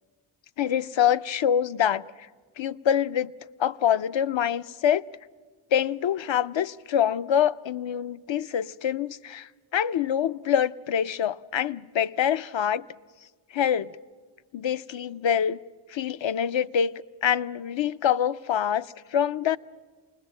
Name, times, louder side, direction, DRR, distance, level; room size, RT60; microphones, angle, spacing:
voice 1, 0.6-2.1 2.6-3.3 3.6-5.1 5.7-12.9 13.5-13.9 14.5-15.6 15.9-19.6, left 9 dB, 65° left, 0.6 m, -25 dB
28.0 x 20.0 x 7.6 m
cardioid pair, 60°, 50 cm